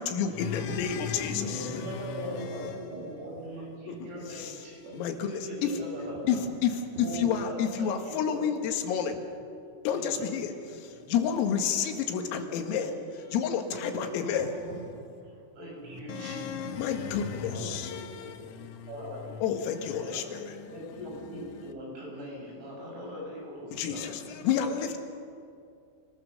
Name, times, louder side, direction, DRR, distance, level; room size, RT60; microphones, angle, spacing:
voice 1, 0.0-2.7 3.9-4.6 4.9-5.8 6.3-6.4 6.6-6.7 7.0-9.2 9.9-14.5 15.8-18.9 19.4-20.7 23.7-25.0, left 7 dB, 90° left, 5 dB, 4.3 m, -30 dB
voice 2, 1.4-3.3 3.8-4.8 5.2-6.4 7.0-8.4 9.1-9.2 9.9-10.2 10.7-11.2 12.2-13.0 13.7-13.9 14.2-14.4 15.6-16.5 17.5-18.1 18.5-19.3 20.0-20.3 20.7-24.1, equal, 75° right, -2 dB, 9.3 m, -41 dB
voice 3, 2.2-4.3 4.8-5.0 5.3-5.7 6.9-7.0 13.9-15.5, right 2 dB, 55° right, -3 dB, 4.1 m, -43 dB
27.5 x 20.0 x 6.6 m, 2.4 s
omnidirectional pair, 5.8 m